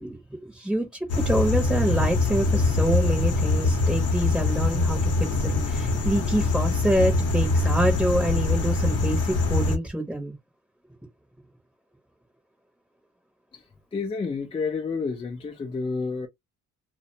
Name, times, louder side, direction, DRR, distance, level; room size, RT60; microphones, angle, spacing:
voice 1, 0.0-10.3, right 1 dB, ahead, 0.7 m, -26 dB
sound 1, 1.1-9.8, left 3 dB, 50° left, 0.8 m, -23 dB
voice 2, 13.9-16.3, left 4 dB, 20° left, 0.4 m, -29 dB
2.4 x 2.2 x 2.7 m
cardioid pair, 100°, 31 cm